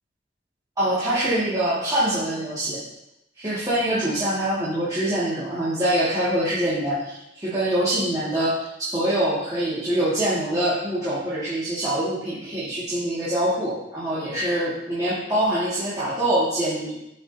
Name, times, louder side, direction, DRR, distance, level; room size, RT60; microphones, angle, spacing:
voice 1, 0.8-2.8 3.4-8.5 8.8-16.9, right 1 dB, 20° right, -11 dB, 2.1 m, -24 dB
14.0 x 5.0 x 2.8 m, 0.87 s
head